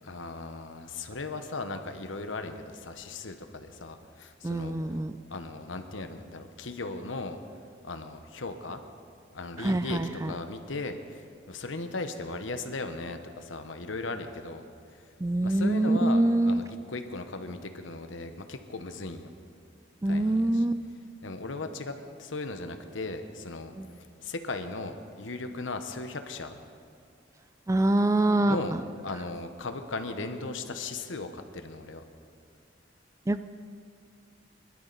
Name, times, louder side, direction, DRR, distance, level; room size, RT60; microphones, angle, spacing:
voice 1, 0.0-5.0 5.3-7.4 7.8-8.8 9.3-14.6 14.9-15.1 15.4-19.3 20.0-20.6 21.2-23.7 24.2-26.6 28.4-28.8 29.0-32.0, left 3 dB, 85° left, 7 dB, 1.1 m, -37 dB
voice 2, 4.4-5.1 9.6-10.3 15.2-16.6 20.0-20.8 23.8-23.9 27.7-28.6 33.3-33.4, right 1 dB, 15° right, 11 dB, 0.3 m, -25 dB
21.5 x 12.5 x 4.1 m, 2.3 s
head